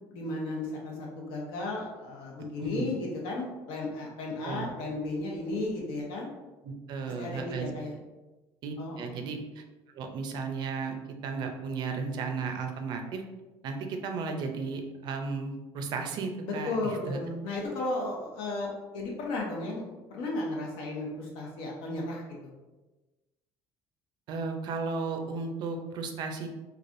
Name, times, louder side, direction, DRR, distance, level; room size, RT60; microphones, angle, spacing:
voice 1, 0.1-6.3 7.2-7.9 8.8-9.1 16.4-19.8 20.1-22.4, left 2 dB, 75° left, -2 dB, 0.8 m, -34 dB
voice 2, 2.6-3.0 4.4-4.7 6.6-7.7 8.6-9.6 9.9-11.0 11.2-13.2 13.6-17.2 24.3-26.5, right 4 dB, 55° right, 4 dB, 0.4 m, -34 dB
3.2 x 2.4 x 2.5 m, 1.1 s
cardioid pair, 125°, 9 cm